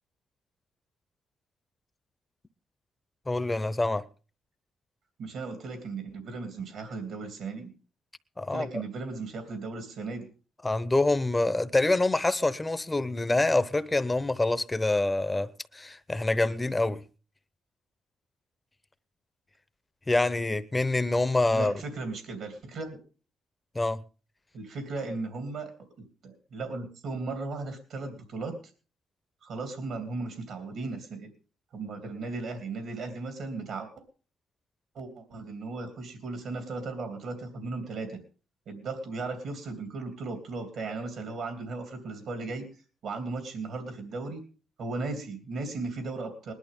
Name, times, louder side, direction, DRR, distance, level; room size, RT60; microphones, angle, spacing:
voice 1, 3.3-4.0 8.4-8.8 10.6-17.0 20.1-21.7 23.7-24.0, left 2 dB, 15° left, 0.8 m, -26 dB
voice 2, 5.2-7.7 8.5-10.3 21.5-23.0 24.5-25.7 26.0-28.5 29.4-31.3 31.7-33.9 34.9-38.2 38.7-42.7 43.0-44.4 44.8-46.5, right 3 dB, 70° right, 2.8 m, -36 dB
20.0 x 11.5 x 3.7 m
cardioid pair, 90°, 0 cm